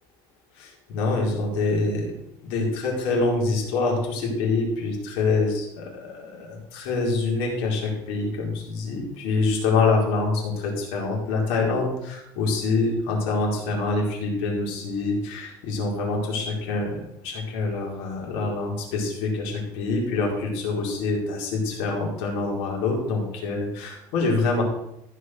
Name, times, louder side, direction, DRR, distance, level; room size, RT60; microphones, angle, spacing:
voice 1, 0.6-2.1 2.4-24.6, left 3 dB, 75° left, -1 dB, 4.7 m, -25 dB
15.0 x 6.6 x 6.4 m, 0.83 s
cardioid pair, 155°, 10 cm